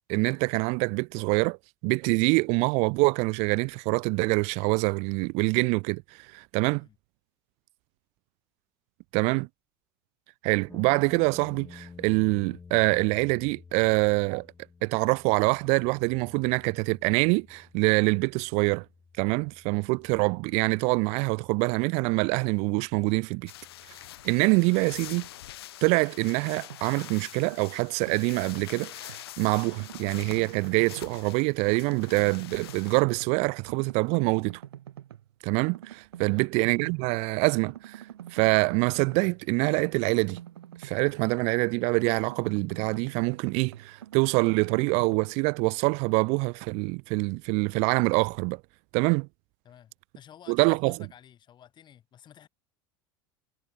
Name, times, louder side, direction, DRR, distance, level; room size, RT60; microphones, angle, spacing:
voice 1, 0.1-1.6 1.8-6.0 6.3-6.9 9.1-9.5 10.4-14.5 14.8-18.8 19.2-23.5 24.2-25.3 25.8-34.6 35.4-38.0 38.3-40.4 40.8-48.6 48.9-49.3 50.5-50.9, right 31 dB, 55° right, 0.4 m, -25 dB
voice 2, 6.6-7.0 9.2-9.5 36.2-36.5 49.6-52.5, left 10 dB, 35° left, 2.6 m, -52 dB
sound 1, 10.7-24.7, left 5 dB, 20° left, 1.9 m, -53 dB
sound 2, 23.5-33.0, left 14 dB, 85° left, 0.5 m, -45 dB
sound 3, 26.7-27.2 27.5-29.3 29.6-31.4 31.7-33.4 33.7-35.3 35.7-37.3 37.7-41.7 41.9-45.3, right 11 dB, 90° right, 3.9 m, -46 dB
hypercardioid pair, 100°, 13 cm